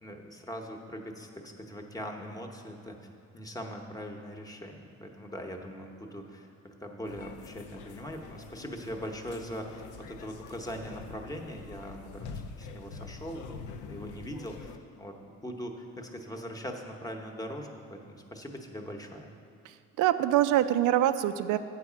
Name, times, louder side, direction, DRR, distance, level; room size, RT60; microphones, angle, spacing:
voice 1, 0.0-3.1 3.3-19.3, equal, 10° left, 3 dB, 0.9 m, -41 dB
sound 1, 7.0-14.8, left 5 dB, 80° left, 0.6 m, -45 dB
voice 2, 19.7-21.6, right 12 dB, 85° right, 11 dB, 0.5 m, -25 dB
8.1 x 4.8 x 7.3 m, 2.5 s
cardioid pair, 90°, 30 cm